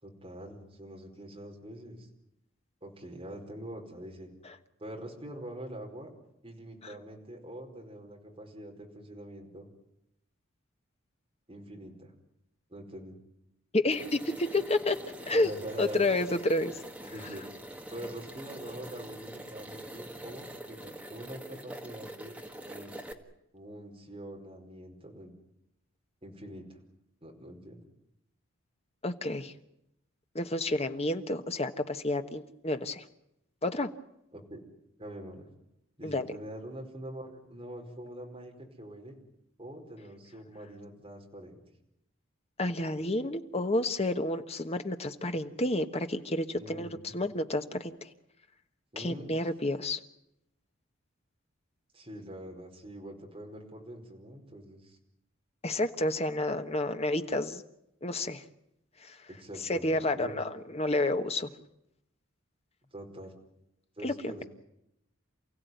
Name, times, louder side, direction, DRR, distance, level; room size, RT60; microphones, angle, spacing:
voice 1, 0.0-2.1 2.8-4.3 4.8-6.1 6.4-9.7 11.5-12.1 12.7-13.2 15.3-16.1 17.1-17.5 17.9-22.3 22.7-23.0 23.5-25.3 26.2-26.7 27.2-27.8 34.3-34.6 35.0-35.4 36.0-39.1 39.6-41.6 46.5-47.1 48.9-49.3 51.9-55.0 59.3-60.4 62.9-63.3 64.0-64.4, right 1 dB, 25° right, 1 dB, 4.8 m, -44 dB
voice 2, 13.7-15.0 15.3-15.5 15.8-16.8 29.0-29.5 30.3-33.0 33.6-33.9 36.0-36.3 42.6-46.9 47.1-48.1 49.0-50.0 55.6-57.6 58.0-58.4 59.0-59.3 59.6-61.5 64.0-64.3, left 2 dB, 30° left, 8 dB, 1.3 m, -30 dB
sound 1, 13.9-23.1, right 1 dB, 5° right, 1.7 m, -44 dB
28.5 x 16.0 x 9.4 m, 0.82 s
head